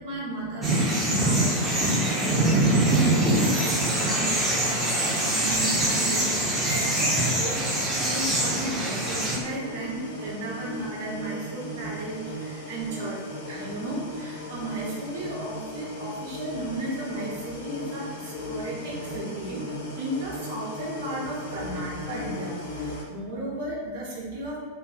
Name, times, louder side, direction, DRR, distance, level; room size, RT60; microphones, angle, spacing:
voice 1, 0.0-3.3 3.6-19.6 20.0-24.6, right 1 dB, 50° right, -4 dB, 0.7 m, -35 dB
sound 1, 0.6-9.4, right 1 dB, 10° right, 0.5 m, -23 dB
sound 2, 9.3-23.0, left 1 dB, 65° left, 0.5 m, -37 dB
2.5 x 2.1 x 2.4 m, 1.4 s
figure-of-eight pair, 90°, 0 cm